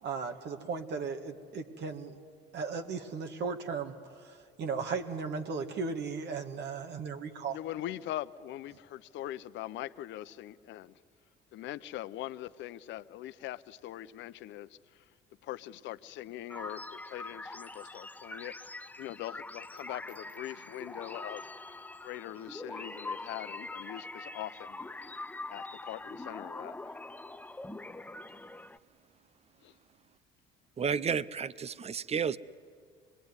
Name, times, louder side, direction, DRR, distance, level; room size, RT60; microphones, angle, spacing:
voice 1, 0.0-2.2 2.5-7.6, right 5 dB, 60° right, 1.8 m, -36 dB
voice 2, 7.5-10.9 11.5-14.7 15.4-18.7 19.0-21.5 22.0-24.8 25.5-26.9 29.6-29.7, left 14 dB, 65° left, 0.8 m, -42 dB
sound 1, 16.5-28.8, left 2 dB, 10° left, 0.8 m, -43 dB
voice 3, 30.8-32.4, right 6 dB, 30° right, 0.7 m, -31 dB
25.0 x 21.0 x 9.7 m
supercardioid pair, 85°, 20 cm